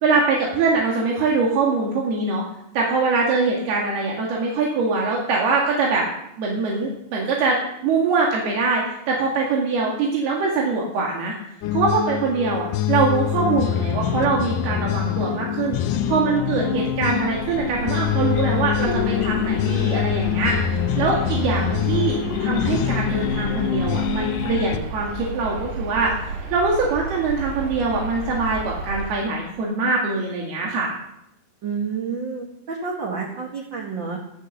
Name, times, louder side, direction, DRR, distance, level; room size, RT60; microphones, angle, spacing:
voice 1, 0.0-2.4 2.7-6.1 6.4-7.6 7.8-11.3 11.7-15.8 16.1-20.6 21.0-26.1 26.5-30.9, right 4 dB, 85° right, -2 dB, 4.1 m, -23 dB
sound 1, 11.6-24.8, left 11 dB, 75° left, 2.0 m, -24 dB
sound 2, 16.5-29.1, right 3 dB, 60° right, 2.8 m, -32 dB
voice 2, 31.6-34.2, right 5 dB, 40° right, -1 dB, 1.9 m, -29 dB
14.0 x 13.5 x 6.7 m, 0.81 s
omnidirectional pair, 4.4 m